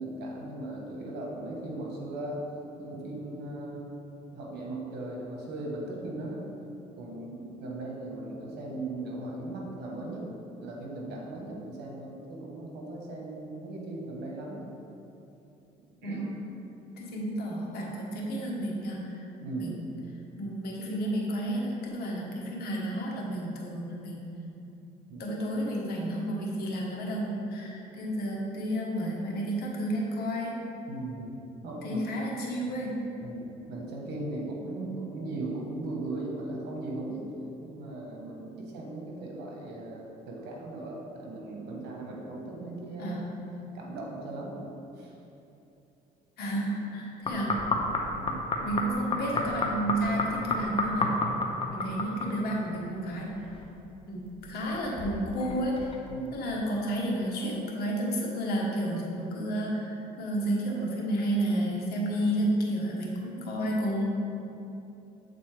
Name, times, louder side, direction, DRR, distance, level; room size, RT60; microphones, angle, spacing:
voice 1, 0.0-2.4 2.8-3.9 4.3-6.5 7.0-14.7 16.0-16.2 19.4-19.8 25.1-25.4 30.9-31.3 31.6-32.0 32.6-32.7 33.2-37.2 37.6-43.2 43.7-44.6 45.0-45.1 48.1-48.5 56.1-56.5 62.2-62.3, right 2 dB, 80° right, -2 dB, 1.3 m, -38 dB
voice 2, 17.0-19.2 19.6-19.8 20.4-24.2 25.2-30.5 31.8-33.0 43.0-43.3 46.4-47.5 48.6-51.2 51.7-53.3 54.1-55.9 56.3-64.1, right 1 dB, 70° left, -2 dB, 1.3 m, -31 dB
sound 1, 47.3-52.7 52.9-54.0 54.3-56.2 56.8-56.9, left 2 dB, 30° left, 0.7 m, -31 dB
7.7 x 4.0 x 3.4 m, 2.9 s
cardioid pair, 110°, 17 cm